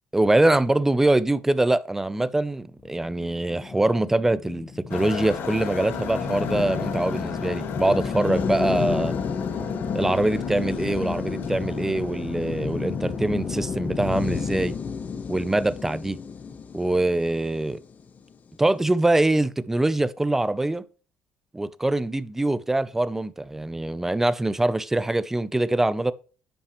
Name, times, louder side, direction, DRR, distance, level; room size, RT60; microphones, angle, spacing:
voice 1, 0.1-9.1 9.9-14.8 15.3-16.2 16.7-17.8 18.6-20.8 21.5-26.1, right 2 dB, 10° right, 0.4 m, -23 dB
sound 1, 2.9-18.3, left 5 dB, 40° left, 0.8 m, -32 dB
sound 2, 4.9-14.4, left 6 dB, 65° left, 1.2 m, -35 dB
9.9 x 5.6 x 3.0 m
cardioid pair, 130°, 4 cm